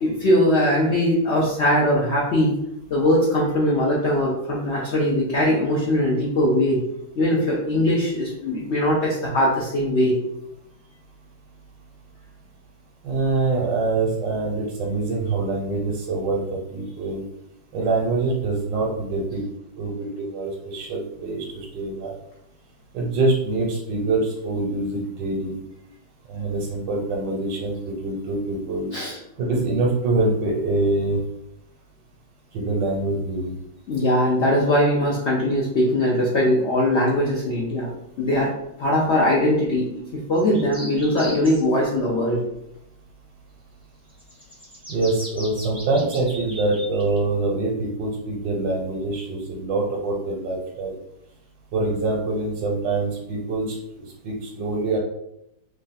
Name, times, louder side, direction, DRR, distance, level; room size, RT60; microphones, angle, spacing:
voice 1, 0.0-2.6 2.9-6.8 7.2-10.2 28.9-29.2 33.9-37.9 38.2-38.5 38.8-42.4, left 1 dB, 70° left, -4 dB, 0.6 m, -21 dB
voice 2, 13.0-16.4 16.7-17.2 17.7-19.4 19.8-22.2 22.9-25.6 26.3-28.9 29.4-31.2 32.5-33.6 44.9-51.0 51.7-55.0, right 2 dB, 75° right, -2 dB, 1.3 m, -25 dB
sound 1, 40.3-41.6 44.1-47.2, equal, 5° right, 0.4 m, -38 dB
3.2 x 2.4 x 4.0 m, 0.80 s
omnidirectional pair, 2.0 m